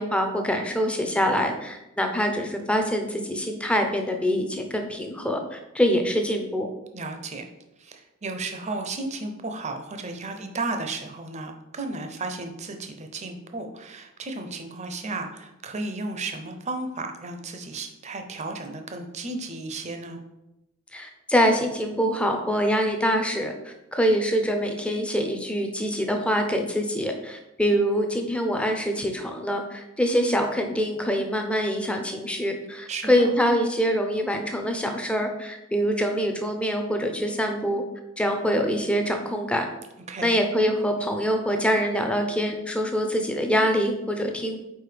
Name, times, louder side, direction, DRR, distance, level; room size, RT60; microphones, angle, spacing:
voice 1, 0.0-6.7 20.9-37.8 38.2-39.7 40.2-44.6, equal, 5° left, 4 dB, 0.6 m, -25 dB
voice 2, 6.9-7.4 7.8-20.2 32.9-33.3 40.1-40.3, right 3 dB, 30° right, 5 dB, 0.6 m, -34 dB
4.7 x 4.4 x 5.0 m, 0.95 s
head